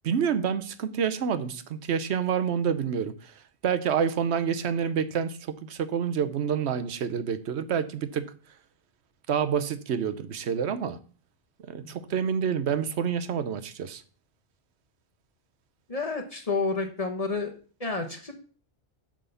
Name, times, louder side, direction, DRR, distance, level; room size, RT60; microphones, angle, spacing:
voice 1, 0.0-3.3 3.6-8.3 9.3-11.0 11.7-14.0, right 7 dB, 80° right, 1.0 m, -28 dB
voice 2, 15.9-17.5 17.8-18.3, left 3 dB, 35° left, 1.1 m, -29 dB
8.9 x 3.8 x 6.9 m
omnidirectional pair, 1.1 m